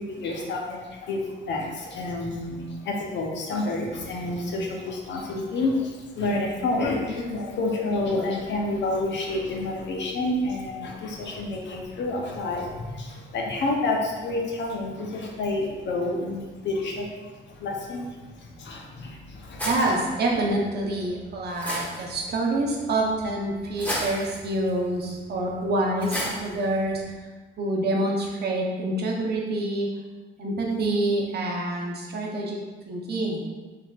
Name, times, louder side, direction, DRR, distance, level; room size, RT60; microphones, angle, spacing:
voice 1, 0.0-19.7, left 2 dB, 65° left, 0 dB, 0.7 m, -29 dB
sound 1, 19.6-27.1, equal, 10° left, 0.9 m, -36 dB
voice 2, 19.6-27.0 27.6-29.9 30.4-32.6 32.9-33.4, right 1 dB, 55° right, -1 dB, 0.8 m, -26 dB
3.6 x 3.6 x 2.3 m, 1.3 s
cardioid pair, 90°, 20 cm